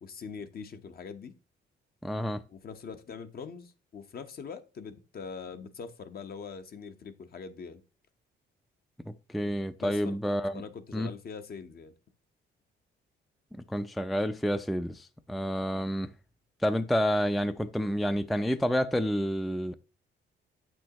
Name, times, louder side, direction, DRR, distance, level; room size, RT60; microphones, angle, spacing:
voice 1, 0.0-1.3 2.5-7.8 9.8-10.2 10.5-11.9, left 5 dB, 50° left, 0.9 m, -43 dB
voice 2, 2.0-2.4 9.1-10.6 10.9-11.1 13.7-16.1 16.6-19.7, equal, ahead, 0.4 m, -29 dB
8.4 x 6.1 x 2.9 m
cardioid pair, 90°, 20 cm